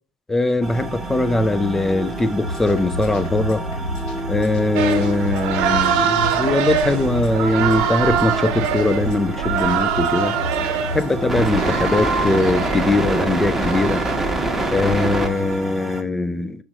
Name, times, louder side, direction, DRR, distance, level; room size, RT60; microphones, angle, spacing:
voice 1, 0.3-3.6 4.3-10.4 10.9-14.1 14.7-16.6, left 2 dB, 10° left, 0.5 m, -21 dB
sound 1, 0.6-16.0, right 2 dB, 10° right, 1.1 m, -27 dB
sound 2, 2.3-11.6, left 1 dB, 70° left, 1.6 m, -31 dB
sound 3, 4.8-15.6, right 7 dB, 65° right, 0.8 m, -24 dB
6.1 x 4.9 x 4.0 m
hypercardioid pair, 90°, 3 cm